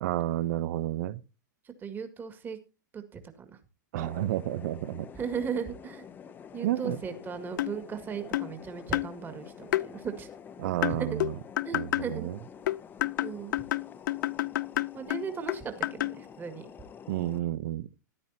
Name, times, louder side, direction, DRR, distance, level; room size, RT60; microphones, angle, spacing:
voice 1, 0.0-1.2 3.9-5.1 6.6-7.0 10.6-11.4 11.7-12.4 17.1-17.9, right 13 dB, 55° right, 0.9 m, -31 dB
voice 2, 1.8-2.6 2.9-3.5 5.2-6.0 6.5-10.3 11.0-11.2 11.6-12.3 13.2-13.5 14.9-16.6, right 6 dB, 20° right, 1.9 m, -37 dB
sound 1, 4.0-17.4, left 7 dB, 20° left, 0.8 m, -48 dB
sound 2, 7.6-7.8 8.3-8.5 8.9-9.1 9.7-9.9 10.8-12.1 12.7-16.2, left 15 dB, 70° left, 0.5 m, -30 dB
14.0 x 11.0 x 2.8 m
hypercardioid pair, 135°, 11 cm